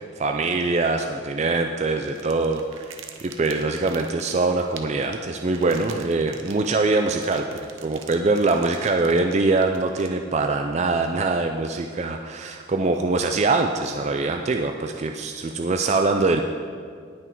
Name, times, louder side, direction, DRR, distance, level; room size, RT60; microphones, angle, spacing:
voice 1, 0.0-16.4, right 3 dB, 35° right, 5 dB, 0.4 m, -23 dB
sound 1, 2.0-10.5, right 7 dB, 75° right, 0.9 m, -45 dB
18.5 x 6.1 x 4.5 m, 2.1 s
head